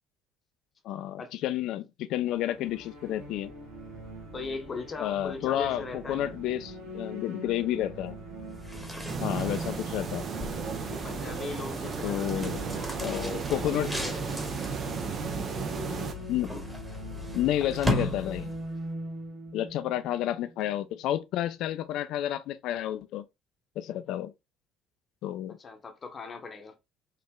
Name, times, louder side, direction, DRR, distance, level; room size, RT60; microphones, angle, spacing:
voice 1, 0.8-3.5 5.0-8.2 9.2-10.3 12.0-12.6 13.0-13.9 16.3-16.5 17.3-18.5 19.5-23.2 23.8-24.3 25.2-25.6, left 12 dB, 60° left, 0.4 m, -30 dB
sound 1, 2.3-21.0, right 2 dB, 75° right, 1.4 m, -42 dB
voice 2, 4.3-6.2 10.9-14.4 25.6-26.7, left 4 dB, 35° left, 0.8 m, -39 dB
sound 2, 8.5-18.8, left 1 dB, 10° right, 1.4 m, -37 dB
sound 3, 9.1-16.1, right 6 dB, 45° right, 0.7 m, -35 dB
4.4 x 2.9 x 2.2 m
figure-of-eight pair, 55°, 0 cm